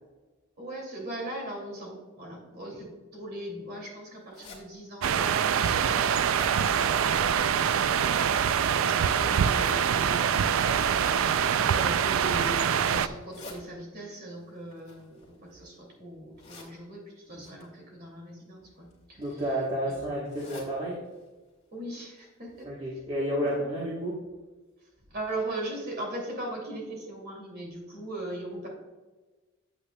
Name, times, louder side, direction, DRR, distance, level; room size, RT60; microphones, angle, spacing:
voice 1, 0.6-6.1 8.9-11.3 11.7-19.5 19.9-20.0 21.7-22.7 23.3-23.6 24.8-28.7, right 1 dB, 45° right, -1 dB, 2.5 m, -39 dB
sound 1, 4.3-4.6 5.2-5.3 5.8-6.5 7.7-8.3 9.3-9.8 10.8-11.2 11.9-12.3 13.1-13.6 14.7-15.7 16.4-16.7 17.4-17.6 18.6-18.9 19.3-19.4 19.6-19.7 20.3-20.7 21.1-21.2 21.5-21.6 22.2-22.3 22.6-22.7, left 3 dB, 30° left, 1.9 m, -48 dB
sound 2, 5.0-13.1, right 8 dB, 70° right, 0.4 m, -24 dB
voice 2, 19.2-21.0 22.6-24.2, equal, 30° right, -6 dB, 1.2 m, -31 dB
8.5 x 8.2 x 2.2 m, 1.2 s
head